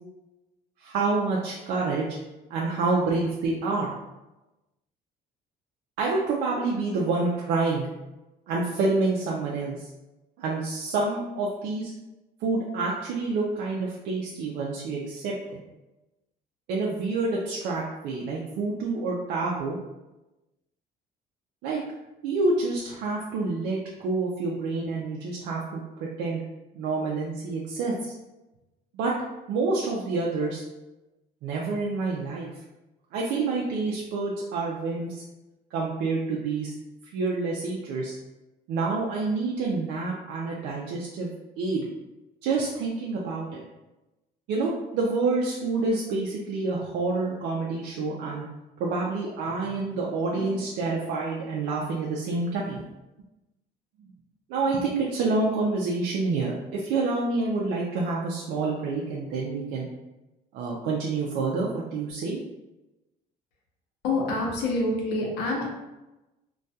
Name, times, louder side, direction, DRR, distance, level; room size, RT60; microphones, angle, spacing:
voice 1, 0.8-2.1 2.5-3.9 6.0-7.9 8.5-9.9 10.4-11.9 12.4-15.6 16.7-19.8 21.6-21.8 22.2-26.4 26.7-28.1 28.9-29.1 29.5-30.6 31.4-32.5 33.1-35.2 35.7-36.7 37.1-38.2 38.7-41.3 41.6-41.9 42.4-43.6 44.5-48.5 48.8-52.8 54.0-54.1 54.5-59.9 60.5-62.4, right 3 dB, 80° right, -4 dB, 0.4 m, -28 dB
voice 2, 64.0-65.7, left 2 dB, 85° left, -1 dB, 0.7 m, -26 dB
2.6 x 2.2 x 2.2 m, 1.0 s
cardioid pair, 110°, 17 cm